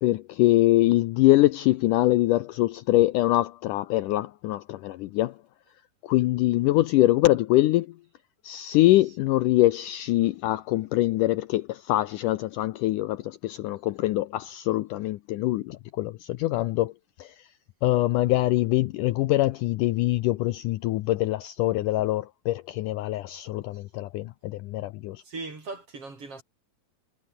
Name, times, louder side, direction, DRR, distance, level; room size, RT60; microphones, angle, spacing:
voice 1, 0.0-5.4 6.0-8.0 8.4-16.9 17.2-17.5 17.8-25.2, left 16 dB, 75° left, 2.0 m, -24 dB
voice 2, 25.3-26.4, right 3 dB, 40° right, 6.1 m, -38 dB
omnidirectional pair, 4.2 m